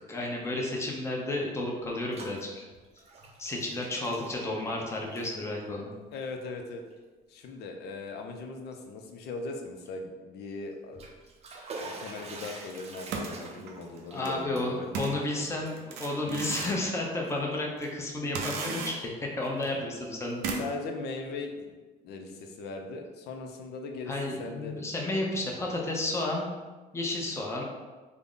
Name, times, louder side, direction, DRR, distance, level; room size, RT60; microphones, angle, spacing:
voice 1, 0.1-2.7 3.4-5.9 14.1-20.4 24.1-26.5 26.9-27.6, left 2 dB, 15° left, -1 dB, 0.6 m, -32 dB
Bathtub (filling or washing), 1.8-2.4 2.7-4.8 5.1-5.4 6.1-6.3 6.9-7.0 7.4-7.5 10.7-16.8 17.2-18.0 18.3-19.7, right 3 dB, 35° right, 0.5 m, -47 dB
voice 2, 6.1-6.8 7.3-11.0 11.8-14.9 15.5-15.6 20.6-21.8 22.0-25.1, left 3 dB, 75° left, 3 dB, 0.5 m, -39 dB
sound 1, 12.8-14.3 14.9-16.9 17.3-17.4 18.3-19.2 19.6-19.7 20.4-20.9, right 4 dB, 90° right, 0.5 m, -36 dB
3.5 x 2.1 x 3.7 m, 1.3 s
cardioid pair, 110°, 17 cm